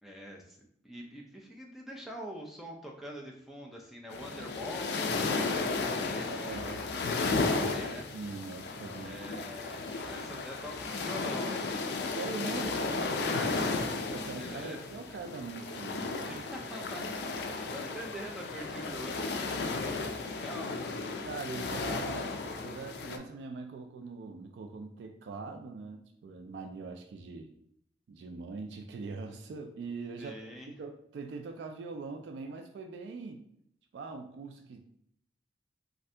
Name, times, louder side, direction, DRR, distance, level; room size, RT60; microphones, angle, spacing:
voice 1, 0.0-8.1 9.0-11.9 13.3-13.8 14.3-14.8 16.3-17.0 17.3-20.8 30.2-30.7, equal, ahead, -1 dB, 0.4 m, -45 dB
sound 1, 4.1-23.2, left 3 dB, 65° left, 0.3 m, -34 dB
voice 2, 6.2-6.8 7.5-9.5 12.1-13.5 13.8-17.8 21.2-22.3 22.6-27.5 28.1-33.4 33.9-34.9, right 4 dB, 80° right, 5 dB, 0.3 m, -42 dB
2.7 x 2.5 x 3.2 m, 0.73 s
head